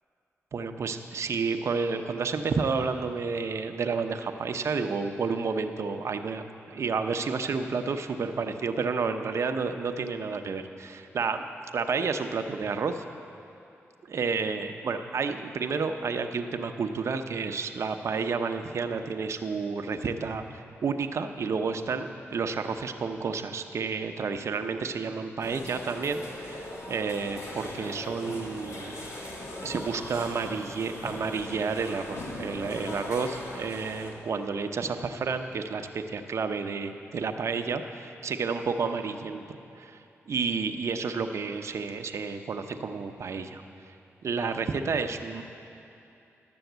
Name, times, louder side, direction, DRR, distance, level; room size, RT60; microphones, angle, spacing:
voice 1, 0.5-10.6 11.1-11.5 11.7-13.0 14.1-29.1 29.6-40.0 40.3-43.6 44.2-45.4, right 5 dB, 65° right, 7 dB, 0.7 m, -30 dB
sound 1, 25.4-34.1, left 1 dB, 70° left, 1.8 m, -39 dB
11.5 x 7.0 x 8.0 m, 2.7 s
cardioid pair, 65°, 5 cm